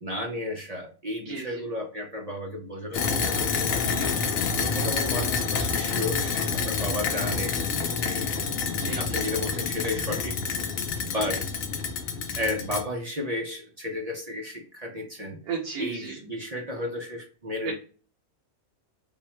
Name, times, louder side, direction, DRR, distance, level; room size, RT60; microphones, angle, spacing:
voice 1, 0.0-4.1 4.5-7.6 8.0-8.3 9.0-10.4 11.0-11.4 12.2-15.4 15.8-17.7, left 1 dB, 45° right, 0 dB, 0.5 m, -33 dB
voice 2, 1.2-1.6 3.9-4.3 8.7-9.2 11.2-11.4 15.5-16.1 17.6-17.7, right 5 dB, 75° right, -1 dB, 1.3 m, -35 dB
sound 1, 2.9-12.8, left 5 dB, 70° left, 1.0 m, -28 dB
3.5 x 2.1 x 4.3 m, 0.37 s
omnidirectional pair, 1.6 m